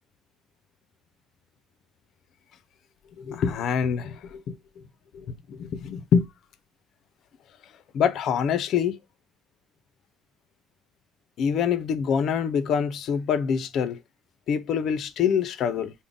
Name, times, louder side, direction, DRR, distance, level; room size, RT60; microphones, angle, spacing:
voice 1, 3.2-4.6 5.1-6.3 7.9-9.0 11.4-14.0 14.5-15.9, left 7 dB, 55° left, 0.4 m, -25 dB
3.6 x 2.0 x 3.7 m
cardioid pair, 145°, 0 cm